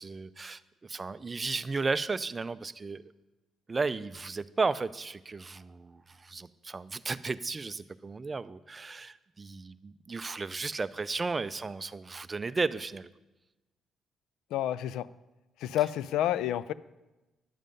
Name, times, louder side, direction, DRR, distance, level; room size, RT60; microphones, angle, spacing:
voice 1, 0.0-3.1 3.7-13.1, right 4 dB, 30° right, 14 dB, 0.4 m, -34 dB
voice 2, 14.5-15.1 15.6-16.7, left 12 dB, 90° left, 18 dB, 0.3 m, -29 dB
11.0 x 7.5 x 5.3 m, 1.1 s
cardioid pair, 90°, 0 cm